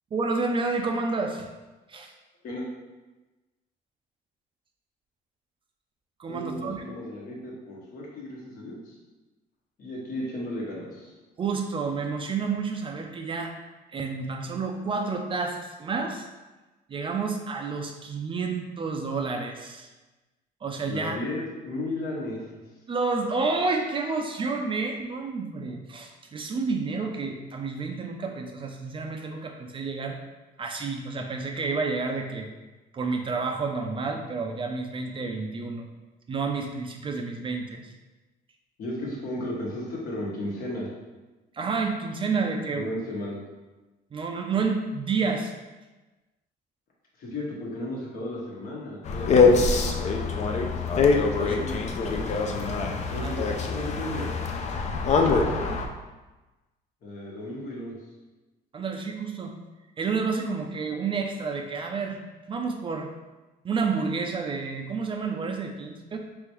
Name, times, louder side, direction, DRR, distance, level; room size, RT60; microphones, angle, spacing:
voice 1, 0.1-1.5 1.9-2.1 6.2-6.8 11.4-13.5 13.9-16.3 16.9-19.9 20.6-21.2 22.9-30.2 30.6-32.5 32.9-35.9 36.3-37.9 41.5-42.9 44.1-45.5 51.4-51.7 53.1-53.4 58.7-59.5 60.0-62.2 62.5-63.1 63.6-66.2, right 4 dB, 30° right, 3 dB, 0.4 m, -30 dB
voice 2, 6.3-9.0 9.8-11.1 20.9-22.5 38.8-40.9 42.7-43.4 47.2-50.4 51.4-52.5 53.1-53.4 53.7-54.3 55.1-55.7 57.0-57.9, left 1 dB, 55° left, -3 dB, 1.2 m, -35 dB
sound 1, 49.0-55.9, left 4 dB, 40° left, 0.5 m, -24 dB
3.7 x 3.3 x 3.0 m, 1.1 s
cardioid pair, 110°, 17 cm